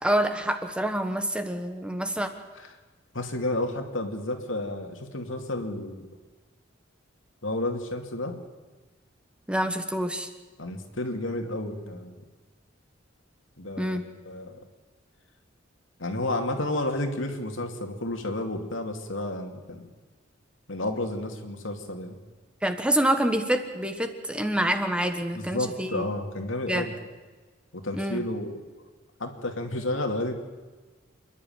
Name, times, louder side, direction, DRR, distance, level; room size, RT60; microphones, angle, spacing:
voice 1, 0.0-2.3 9.5-10.3 13.8-14.0 22.6-26.0 26.7-26.9 27.9-28.2, right 1 dB, 5° right, 7 dB, 1.4 m, -27 dB
voice 2, 3.1-6.1 7.4-8.4 10.6-12.2 13.6-14.0 14.3-14.6 16.0-19.9 20.7-22.2 25.3-27.0 27.7-28.6 29.2-30.3, left 1 dB, 85° left, 4 dB, 2.5 m, -31 dB
27.5 x 11.0 x 9.2 m, 1.3 s
head